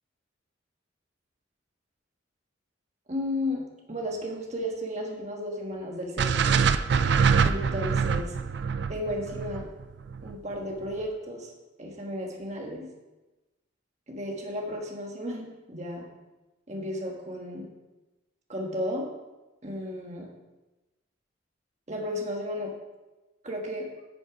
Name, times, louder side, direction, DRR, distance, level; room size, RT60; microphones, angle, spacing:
voice 1, 3.1-3.6 3.9-6.7 7.4-8.3 8.9-9.7 10.2-11.5 11.8-12.9 14.1-16.1 16.7-17.7 18.5-19.1 19.6-20.3 21.9-22.7 23.4-23.9, left 1 dB, 35° right, 0 dB, 1.4 m, -33 dB
sound 1, 6.2-10.4, right 6 dB, 55° right, 0.4 m, -24 dB
10.0 x 6.2 x 4.9 m, 1.1 s
head